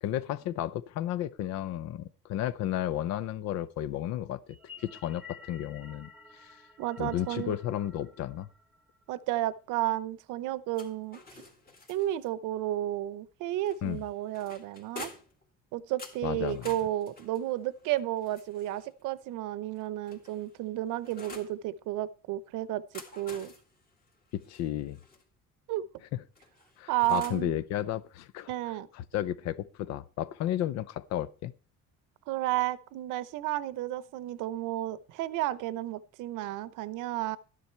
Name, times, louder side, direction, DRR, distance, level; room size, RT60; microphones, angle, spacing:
voice 1, 0.0-6.6 7.0-8.5 13.8-14.0 16.2-16.7 24.3-25.0 26.1-26.2 26.8-28.5 28.9-31.5, left 12 dB, 60° left, 0.6 m, -33 dB
sound 1, 4.5-9.0, left 4 dB, ahead, 1.0 m, -52 dB
voice 2, 6.8-7.6 9.1-11.4 11.9-15.1 15.7-23.5 25.7-25.9 26.9-27.5 28.5-28.9 32.3-37.4, right 14 dB, 85° right, 0.9 m, -32 dB
sound 2, 10.7-12.3 13.7-15.4 16.0-18.9 19.7-21.6 22.7-25.2 26.4-27.5, left 3 dB, 30° left, 2.2 m, -49 dB
13.0 x 10.0 x 4.5 m
cardioid pair, 175°, 30 cm